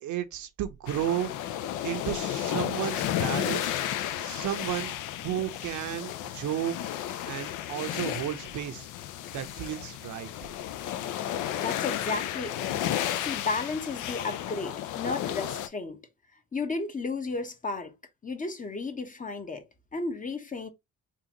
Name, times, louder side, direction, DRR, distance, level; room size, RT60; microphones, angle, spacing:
voice 1, 0.0-1.3 1.8-3.7 4.2-4.9 5.2-6.9 7.3-8.9 9.3-10.3, right 11 dB, 75° right, 0.7 m, -33 dB
sound 1, 0.9-15.7, left 11 dB, 85° left, 0.5 m, -33 dB
voice 2, 11.6-12.8 13.2-16.0 16.5-17.9 18.2-19.6 19.9-20.7, left 3 dB, 25° left, 0.7 m, -33 dB
3.7 x 2.4 x 2.8 m
cardioid pair, 90°, 30 cm